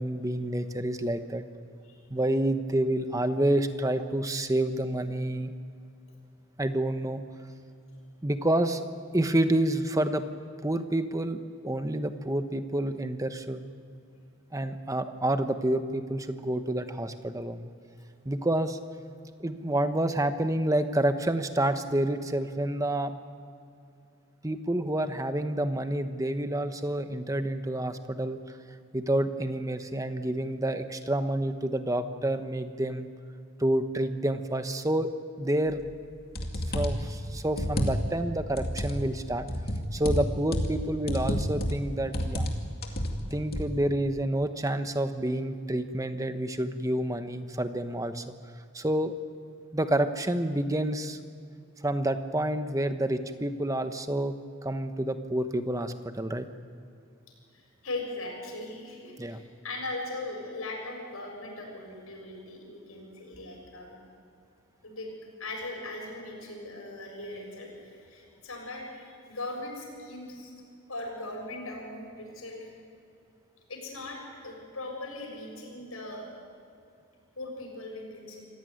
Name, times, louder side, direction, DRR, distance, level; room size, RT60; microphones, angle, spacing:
voice 1, 0.0-1.4 2.1-5.5 6.6-7.2 8.2-8.8 9.1-10.3 10.6-13.6 14.5-17.7 18.2-18.8 19.4-23.1 24.4-28.4 28.9-33.1 33.6-35.1 35.4-35.8 36.7-39.5 39.9-42.5 43.3-48.2 48.7-49.1 49.7-51.2 51.8-54.3 54.6-56.5 59.2-59.4, right 1 dB, 15° right, 9 dB, 1.0 m, -28 dB
sound 1, 35.9-36.0 36.4-37.1 37.5-38.2 38.6-39.0 39.5-40.8 41.1-41.8 42.1-42.6 42.8-43.7, equal, 45° left, 2.4 m, -30 dB
voice 2, 57.5-64.0 64.8-65.1 65.4-72.7 73.7-76.2 77.3-78.4, left 2 dB, 85° left, 1 dB, 6.9 m, -39 dB
26.5 x 15.5 x 9.4 m, 2.5 s
head